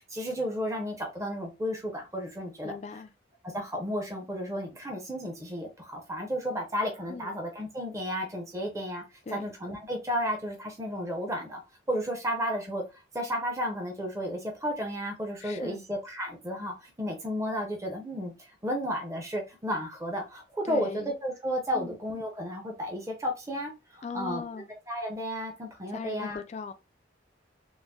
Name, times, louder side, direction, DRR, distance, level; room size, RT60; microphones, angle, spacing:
voice 1, 0.0-2.7 3.5-9.0 9.3-11.6 11.9-20.9 21.2-26.4, equal, 15° right, 0.6 m, -33 dB
voice 2, 2.6-3.1 7.1-7.4 9.3-9.4 15.4-15.8 20.6-21.1 21.7-21.9 24.0-24.7 25.9-26.7, left 4 dB, 35° left, 0.3 m, -38 dB
3.8 x 2.0 x 2.2 m
head